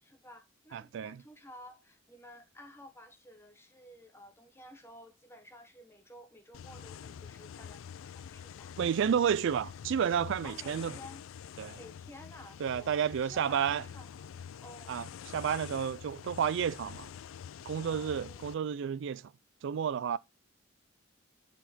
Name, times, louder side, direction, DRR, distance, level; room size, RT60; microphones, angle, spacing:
voice 1, 0.0-8.9 10.4-11.2 11.8-15.0 17.8-18.4, left 1 dB, 15° left, 1.2 m, -53 dB
voice 2, 0.7-1.2 8.8-10.9 11.6-11.8 12.6-13.8 14.9-15.0 15.3-17.1 17.7-19.3 19.6-20.2, right 8 dB, 65° right, 0.3 m, -31 dB
sound 1, 6.5-18.6, left 8 dB, 75° left, 0.3 m, -46 dB
7.8 x 4.6 x 4.2 m
head